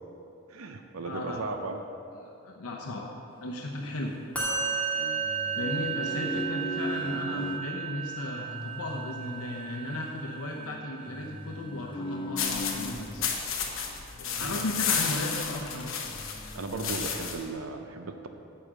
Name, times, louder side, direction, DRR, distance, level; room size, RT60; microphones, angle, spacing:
voice 1, 0.5-1.8 5.0-5.3 14.4-14.7 16.5-18.3, right 3 dB, 70° right, 6 dB, 0.6 m, -36 dB
voice 2, 1.0-1.5 2.2-3.1 3.4-4.2 5.6-13.5 14.2-15.9, left 2 dB, 85° left, -1 dB, 0.8 m, -35 dB
sound 1, 3.5-4.7 5.2-7.7 8.2-13.3 14.1-15.3 15.6-15.7 16.1-17.1, equal, 20° left, 0.4 m, -39 dB
Musical instrument, 4.3-11.6, right 6 dB, 5° left, 1.9 m, -34 dB
sound 2, 12.4-17.5, left 6 dB, 60° left, 1.0 m, -32 dB
9.9 x 5.0 x 7.5 m, 2.7 s
head